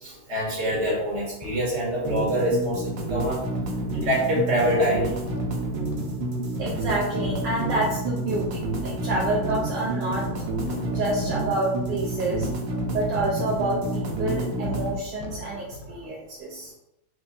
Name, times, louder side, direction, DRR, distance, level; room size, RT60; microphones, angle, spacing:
voice 1, 0.0-3.4 3.9-5.1, equal, 50° right, -5 dB, 2.1 m, -25 dB
sound 1, 0.8-16.1, left 2 dB, 70° left, 1.2 m, -40 dB
sound 2, 2.1-15.0, right 2 dB, 90° right, 1.8 m, -29 dB
voice 2, 6.6-10.5 10.8-12.5 12.9-16.7, right 2 dB, 65° right, -5 dB, 1.3 m, -28 dB
4.5 x 3.6 x 2.6 m, 0.86 s
omnidirectional pair, 2.4 m